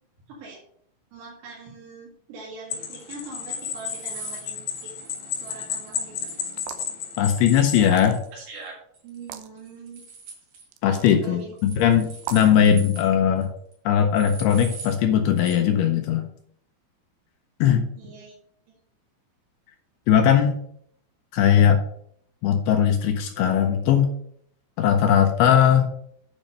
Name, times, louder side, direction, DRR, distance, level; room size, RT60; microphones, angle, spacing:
voice 1, 0.3-0.6 1.1-4.9 5.4-6.5 8.3-8.7 9.0-10.0 11.1-11.6 18.0-18.3, right 3 dB, 75° right, -3 dB, 3.9 m, -42 dB
sound 1, 2.7-7.9, left 8 dB, 55° left, 2.2 m, -33 dB
sound 2, 3.0-6.7 7.5-8.7 8.9-9.3 9.6-10.7 11.6-13.1 13.4-13.5 13.7-13.8 14.2-15.0 15.4-15.6, right 4 dB, 55° right, 3.4 m, -43 dB
sound 3, 6.5-7.0 7.8-8.4 9.2-9.5 10.7-11.2 12.2-12.6, right 10 dB, 90° right, 3.0 m, -38 dB
voice 2, 7.2-8.2 10.8-13.5 13.9-16.3 17.6-17.8 20.1-20.6 21.3-21.8 22.4-24.1 24.8-25.9, left 9 dB, 80° left, 4 dB, 2.5 m, -19 dB
9.1 x 5.2 x 5.3 m, 0.65 s
omnidirectional pair, 5.0 m